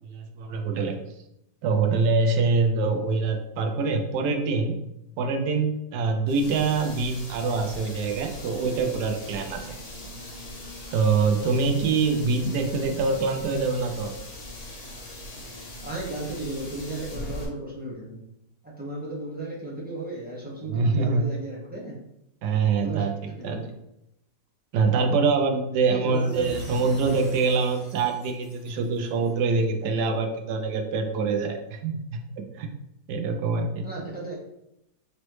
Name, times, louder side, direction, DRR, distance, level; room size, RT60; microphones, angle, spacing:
voice 1, 0.0-1.0 1.6-4.8 5.2-9.8 10.9-14.1 20.7-21.2 22.4-23.6 24.7-32.2 32.5-32.7 33.1-33.8, right 4 dB, 80° right, 5 dB, 1.2 m, -25 dB
sound 1, 6.3-17.4, left 1 dB, 70° left, 0.3 m, -40 dB
voice 2, 15.8-18.3 18.6-22.0 22.8-23.1 23.4-23.7 25.9-26.5 33.8-34.4, right 2 dB, 10° right, -6 dB, 0.7 m, -35 dB
sound 2, 26.1-29.5, equal, 45° left, 1.3 m, -43 dB
4.0 x 3.2 x 3.0 m, 0.82 s
omnidirectional pair, 1.8 m